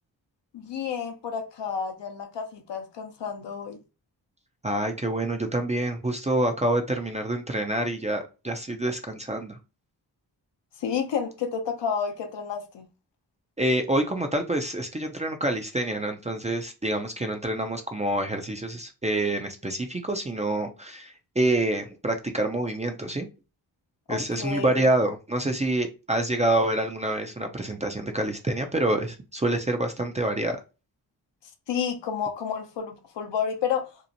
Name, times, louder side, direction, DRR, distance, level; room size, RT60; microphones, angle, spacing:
voice 1, 0.5-3.8 10.8-12.9 24.1-24.8 31.7-33.9, left 7 dB, 65° left, 0.7 m, -30 dB
voice 2, 4.6-9.6 13.6-23.3 24.1-30.6, right 1 dB, 15° right, 0.4 m, -27 dB
2.8 x 2.0 x 2.6 m
cardioid pair, 50°, 45 cm